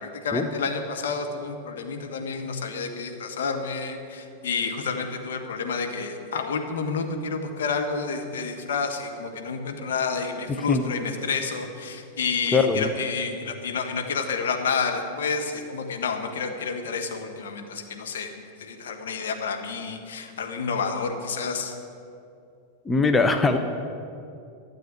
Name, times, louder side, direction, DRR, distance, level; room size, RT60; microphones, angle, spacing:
voice 1, 0.0-21.8, left 5 dB, 60° left, 4 dB, 1.4 m, -29 dB
voice 2, 12.5-12.9 22.9-23.6, left 4 dB, 15° left, 7 dB, 0.7 m, -21 dB
13.0 x 7.8 x 9.2 m, 2.6 s
figure-of-eight pair, 90°, 0 cm